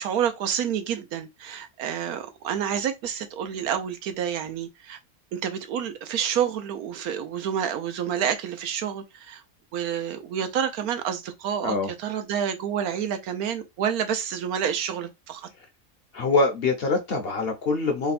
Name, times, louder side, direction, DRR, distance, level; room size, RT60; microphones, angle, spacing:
voice 1, 0.0-5.0 5.3-9.4 9.7-15.5, right 8 dB, 90° right, 1.2 m, -29 dB
voice 2, 16.1-18.1, left 3 dB, 55° left, 0.8 m, -24 dB
3.4 x 2.2 x 4.1 m
omnidirectional pair, 1.5 m